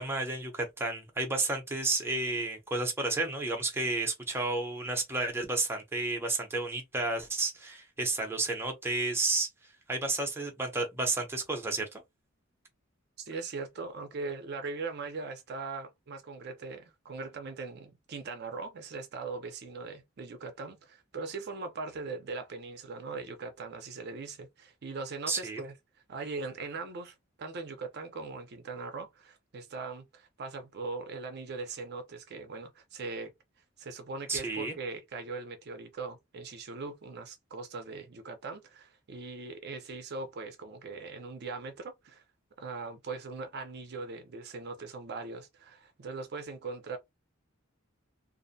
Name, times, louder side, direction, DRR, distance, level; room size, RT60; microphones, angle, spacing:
voice 1, 0.0-9.5 9.9-12.0 25.3-25.6 34.3-34.7, right 2 dB, 10° right, 0.6 m, -31 dB
voice 2, 13.2-25.7 26.1-33.3 33.8-42.2 42.6-47.0, right 4 dB, 55° right, 0.5 m, -40 dB
2.5 x 2.1 x 2.6 m
head